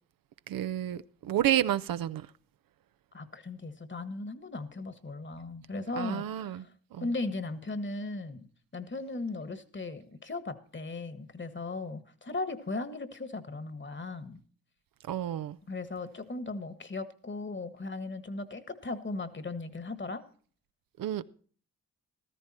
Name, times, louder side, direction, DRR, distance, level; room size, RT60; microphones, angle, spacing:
voice 1, 0.5-2.3 6.0-6.7 6.9-7.1 15.1-15.6 21.0-21.2, right 12 dB, 75° right, 0.6 m, -30 dB
voice 2, 3.1-6.7 7.0-14.4 15.7-20.2, left 3 dB, 35° left, 1.6 m, -37 dB
14.0 x 13.5 x 4.3 m
supercardioid pair, 45°, 34 cm